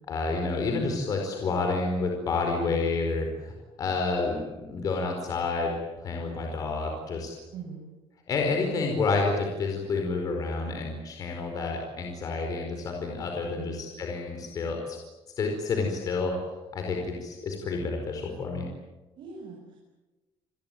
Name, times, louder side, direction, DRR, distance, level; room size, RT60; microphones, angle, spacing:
voice 1, 0.1-5.7 6.0-7.3 8.3-15.0 15.4-16.3 16.7-18.7, left 3 dB, 40° left, 2 dB, 4.8 m, -29 dB
voice 2, 19.2-19.8, right 6 dB, 55° right, -1 dB, 7.7 m, -41 dB
28.0 x 22.0 x 9.4 m, 1.1 s
cardioid pair, 175°, 10 cm